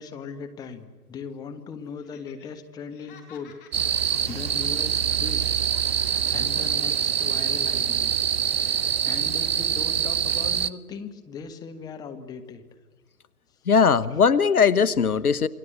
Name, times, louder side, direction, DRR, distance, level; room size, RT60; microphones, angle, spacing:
voice 1, 0.0-3.5 3.8-12.6 14.1-14.2, left 5 dB, 10° left, 6 dB, 1.3 m, -39 dB
Laughter, 2.0-2.5 2.8-5.5 5.7-7.4 7.7-7.9, left 8 dB, 35° left, 4.4 m, -52 dB
sound 1, 3.7-10.7, right 9 dB, 40° right, 0.8 m, -25 dB
voice 2, 13.7-15.5, left 6 dB, 70° left, 17 dB, 1.1 m, -19 dB
28.0 x 24.0 x 8.0 m, 1.3 s
figure-of-eight pair, 130°, 46 cm